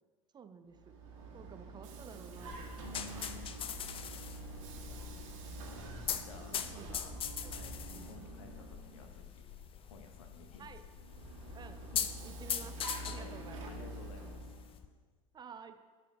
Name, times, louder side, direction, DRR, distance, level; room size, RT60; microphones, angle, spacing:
voice 1, 0.3-1.0 1.3-2.8 4.9-5.0 6.4-7.0 7.4-7.7 10.6-10.9 11.5-11.9 12.2-12.8 13.0-13.8 15.3-15.8, right 6 dB, 25° right, 10 dB, 0.5 m, -52 dB
Vehicle, 0.7-9.2 10.9-14.8, right 2 dB, 65° right, 1.7 m, -47 dB
sound 1, 2.4-14.8, left 8 dB, 30° left, 0.5 m, -42 dB
voice 2, 2.8-3.5 6.2-7.2 7.5-10.7 11.9-12.1 13.0-13.4 13.6-14.6, left 2 dB, 70° left, 5 dB, 1.2 m, -54 dB
11.0 x 6.0 x 3.5 m, 1.5 s
figure-of-eight pair, 75°, 18 cm